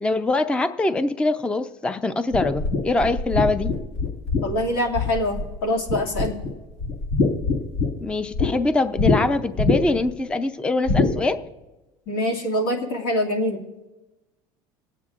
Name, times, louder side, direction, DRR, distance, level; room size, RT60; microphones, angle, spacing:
voice 1, 0.0-3.7 8.0-11.4, left 2 dB, 10° left, 11 dB, 0.4 m, -23 dB
sound 1, 2.3-5.6 5.9-6.5 6.8-8.5 9.0-9.2 9.6-10.1 10.9-11.1, left 3 dB, 65° left, 1.8 m, -22 dB
voice 2, 4.4-6.4 12.1-13.6, left 1 dB, 80° left, 1 dB, 2.1 m, -24 dB
26.5 x 9.0 x 2.4 m, 1.1 s
supercardioid pair, 120°, 12 cm